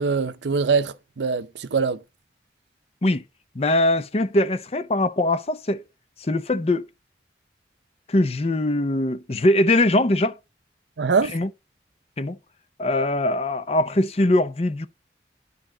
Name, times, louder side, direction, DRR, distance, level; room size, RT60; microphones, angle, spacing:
voice 1, 0.0-2.0 11.0-11.3, right 5 dB, 80° right, 0.6 m, -23 dB
voice 2, 3.5-5.8 6.2-6.9 8.1-10.4 11.2-11.5 12.2-12.4 12.8-14.9, left 1 dB, 35° left, 0.6 m, -22 dB
11.0 x 4.2 x 3.8 m
head